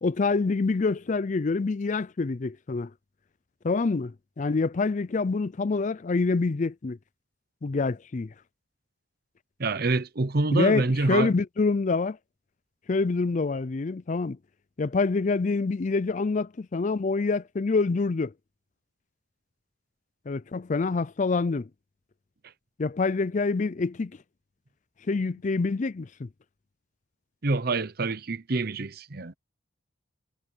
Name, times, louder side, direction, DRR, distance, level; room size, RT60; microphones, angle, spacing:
voice 1, 0.0-2.9 3.6-7.0 7.6-8.3 10.5-12.2 12.9-14.4 14.8-18.3 20.3-21.7 22.8-24.1 25.1-26.3, left 3 dB, 40° left, 0.4 m, -26 dB
voice 2, 9.6-11.3 27.4-29.3, right 3 dB, 50° right, 0.9 m, -26 dB
head